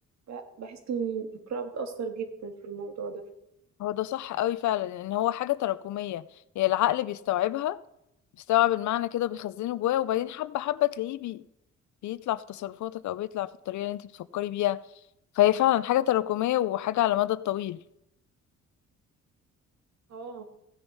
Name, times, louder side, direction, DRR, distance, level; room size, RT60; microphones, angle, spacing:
voice 1, 0.3-3.2 20.1-20.5, right 6 dB, 65° right, 1.9 m, -35 dB
voice 2, 3.8-6.2 6.6-7.8 8.5-11.4 12.0-14.0 14.3-14.8 15.4-17.8, left 14 dB, 70° left, 0.6 m, -27 dB
15.5 x 7.0 x 5.5 m
cardioid pair, 90°, 30 cm